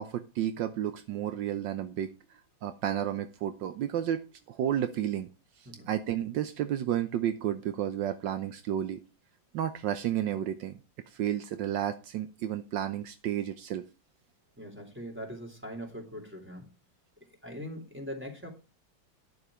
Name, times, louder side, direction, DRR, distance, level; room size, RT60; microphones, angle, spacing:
voice 1, 0.0-2.1 2.6-5.3 5.6-9.0 9.5-10.8 11.1-13.8, right 10 dB, 80° right, 10 dB, 1.4 m, -32 dB
voice 2, 14.6-16.7 17.4-18.5, equal, 5° right, 1 dB, 3.5 m, -41 dB
10.5 x 7.1 x 4.9 m, 0.29 s
omnidirectional pair, 2.0 m